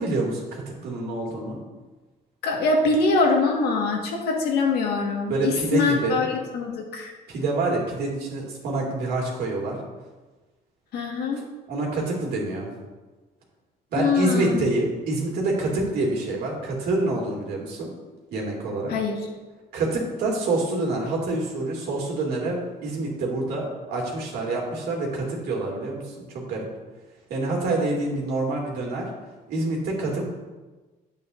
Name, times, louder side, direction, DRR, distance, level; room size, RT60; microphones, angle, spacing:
voice 1, 0.0-1.6 5.3-6.3 7.3-9.8 11.7-12.7 13.9-17.9 18.3-18.9 19.7-26.7 27.3-29.1 29.5-30.2, right 2 dB, 70° right, -1 dB, 2.6 m, -27 dB
voice 2, 2.4-7.1 10.9-11.4 14.0-14.7 18.9-19.2, left 3 dB, 75° left, 0 dB, 1.8 m, -23 dB
9.5 x 8.3 x 2.7 m, 1.2 s
cardioid pair, 110°, 17 cm